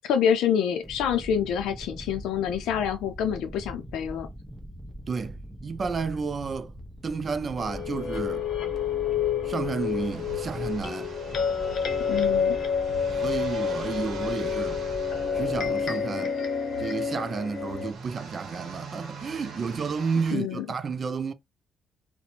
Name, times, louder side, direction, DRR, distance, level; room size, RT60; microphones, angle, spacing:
voice 1, 0.0-4.3 12.1-12.6 20.3-20.7, left 8 dB, 85° left, 0.5 m, -26 dB
sound 1, 0.8-15.9, equal, 5° right, 0.9 m, -42 dB
voice 2, 5.1-6.7 7.0-8.5 9.4-11.1 13.2-14.8 15.3-16.4 16.8-21.3, right 5 dB, 40° right, 0.3 m, -31 dB
sound 2, 7.6-17.9, left 7 dB, 60° left, 0.7 m, -29 dB
sound 3, 9.5-20.3, right 5 dB, 65° right, 0.8 m, -44 dB
2.4 x 2.1 x 2.8 m
cardioid pair, 90°, 0 cm